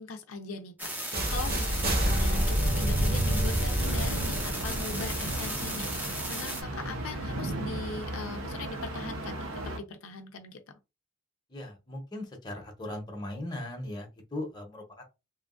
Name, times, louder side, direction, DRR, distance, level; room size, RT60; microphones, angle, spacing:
voice 1, 0.0-10.8, left 3 dB, 80° left, 0.5 m, -40 dB
sound 1, 0.8-6.6, right 1 dB, 10° right, 0.5 m, -36 dB
sound 2, 1.1-7.0, right 1 dB, 45° right, 0.9 m, -29 dB
sound 3, 3.8-9.8, right 1 dB, 75° right, 0.7 m, -36 dB
voice 2, 11.5-15.0, left 1 dB, 20° left, 0.7 m, -38 dB
3.0 x 2.3 x 2.4 m
head